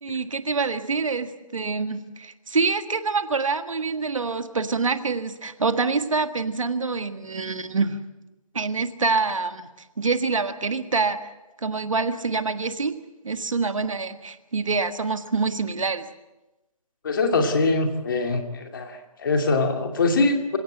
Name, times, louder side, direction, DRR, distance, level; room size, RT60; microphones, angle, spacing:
voice 1, 0.0-8.0 8.5-11.3 11.6-13.0 13.2-16.1, right 4 dB, 60° right, 9 dB, 1.7 m, -26 dB
voice 2, 17.0-20.6, left 3 dB, 35° left, 4 dB, 2.5 m, -23 dB
28.0 x 17.0 x 7.8 m, 1.0 s
figure-of-eight pair, 160°, 19 cm